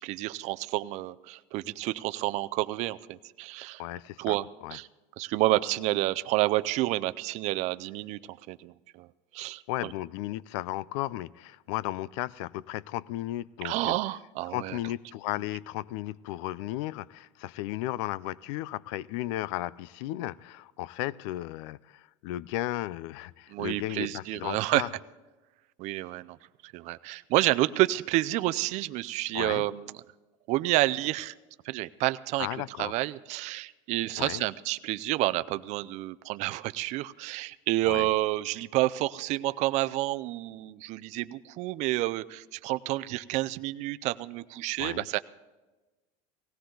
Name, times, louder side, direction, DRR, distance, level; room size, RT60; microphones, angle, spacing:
voice 1, 0.0-3.8 4.2-4.5 4.7-4.9 5.2-9.1 9.3-9.9 13.6-14.8 23.5-24.8 25.8-26.4 26.6-30.0 30.5-31.4 31.6-32.5 32.8-45.2, right 17 dB, 50° right, 0.5 m, -29 dB
voice 2, 3.8-4.4 4.6-4.8 9.7-14.0 14.5-24.9 29.3-29.6 32.4-32.9 34.2-34.4 37.8-38.1 44.8-45.0, left 15 dB, 75° left, 0.4 m, -35 dB
18.0 x 16.5 x 3.9 m
cardioid pair, 150°, 15 cm